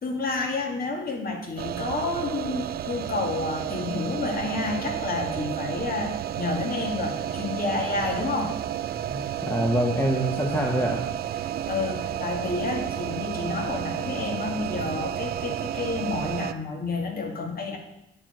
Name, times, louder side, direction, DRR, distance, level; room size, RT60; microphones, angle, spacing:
voice 1, 0.0-8.6 11.7-17.8, left 3 dB, 50° left, 2 dB, 2.1 m, -30 dB
sound 1, 1.6-16.5, right 11 dB, 50° right, 0.4 m, -31 dB
voice 2, 9.0-11.0, equal, 10° left, 0 dB, 1.2 m, -25 dB
9.6 x 4.6 x 6.4 m, 0.86 s
cardioid pair, 90°, 20 cm